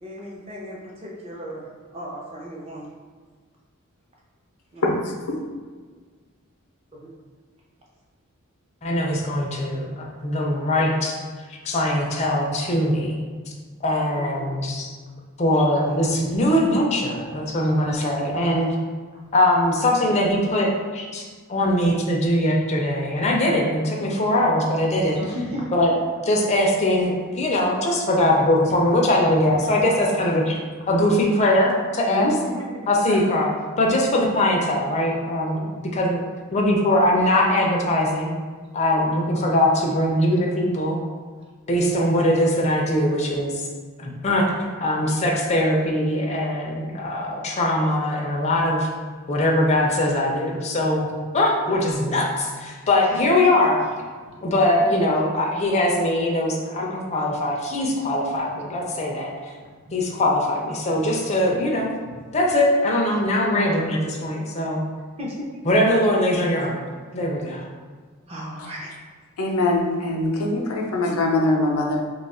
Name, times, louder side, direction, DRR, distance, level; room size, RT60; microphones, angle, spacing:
voice 1, 0.0-1.6 1.9-2.9 4.7-4.8 7.0-7.1 14.4-14.5 25.1-25.7 32.1-32.8 33.1-33.2 54.3-54.4 65.2-65.5 68.3-68.9, equal, 25° right, -4 dB, 0.6 m, -32 dB
voice 2, 4.8-5.4 68.6-68.7 69.4-72.0, left 2 dB, 80° left, 1 dB, 0.6 m, -23 dB
voice 3, 8.8-11.2 11.6-13.2 13.8-14.9 15.4-18.7 19.3-21.2 21.5-25.2 25.7-26.0 26.2-30.6 30.9-32.3 32.9-33.5 33.8-36.2 36.5-38.3 38.7-41.0 41.7-43.6 44.0-44.5 44.8-48.9 49.3-51.1 51.3-53.8 54.4-59.5 59.9-61.9 62.3-64.8 65.6-66.8 67.1-67.7, left 1 dB, 30° left, -1 dB, 0.4 m, -21 dB
2.8 x 2.3 x 4.1 m, 1.5 s
head